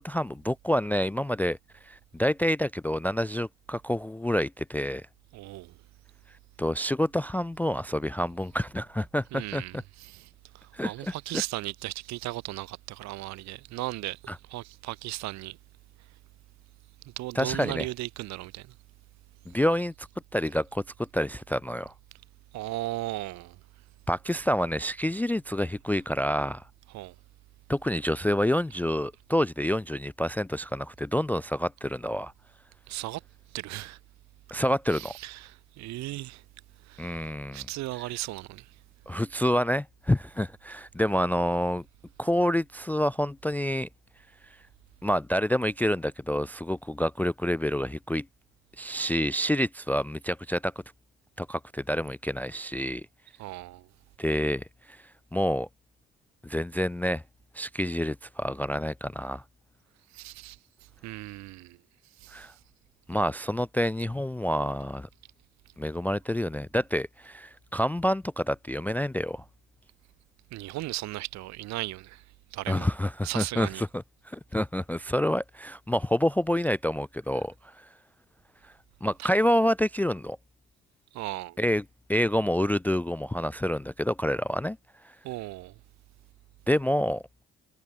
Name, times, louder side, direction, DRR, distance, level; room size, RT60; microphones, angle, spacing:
voice 1, 0.0-1.6 1.8-5.0 6.6-9.8 10.7-11.4 14.3-14.4 17.4-17.8 19.5-20.1 20.3-21.9 24.1-26.6 27.7-32.3 34.5-35.1 37.0-37.6 39.1-41.8 42.2-43.9 45.0-48.3 48.8-50.7 51.4-53.0 54.2-55.0 55.3-55.7 56.4-57.2 57.5-59.4 62.3-62.5 63.1-65.1 65.8-69.4 72.7-77.9 79.0-80.4 81.6-81.8 82.1-84.8 86.7-87.2, equal, 5° left, 0.4 m, -28 dB
voice 2, 5.3-5.8 9.3-14.2 14.5-15.6 17.0-18.7 22.5-23.6 26.9-27.1 32.9-33.2 33.5-34.0 34.9-36.4 36.8-38.7 53.4-53.9 60.1-60.6 61.0-61.8 62.2-62.5 70.5-72.2 72.5-72.9 73.2-73.8 79.2-79.3 81.1-81.6 85.2-85.7, right 18 dB, 65° right, 1.6 m, -36 dB
hypercardioid pair, 55°, 29 cm